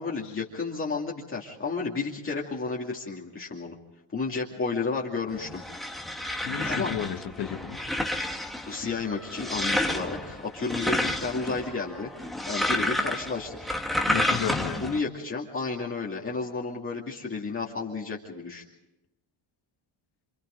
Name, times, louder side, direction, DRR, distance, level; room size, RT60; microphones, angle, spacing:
voice 1, 0.0-3.8 4.1-5.6 6.7-6.9 8.6-12.1 12.5-13.7 14.8-18.6, left 4 dB, 25° left, -3 dB, 2.6 m, -32 dB
sound 1, 5.3-15.0, left 1 dB, ahead, 1.6 m, -30 dB
voice 2, 6.4-7.8 14.1-14.9, left 9 dB, 55° left, 7 dB, 1.6 m, -33 dB
28.0 x 26.5 x 3.9 m, 0.93 s
cardioid pair, 145°, 47 cm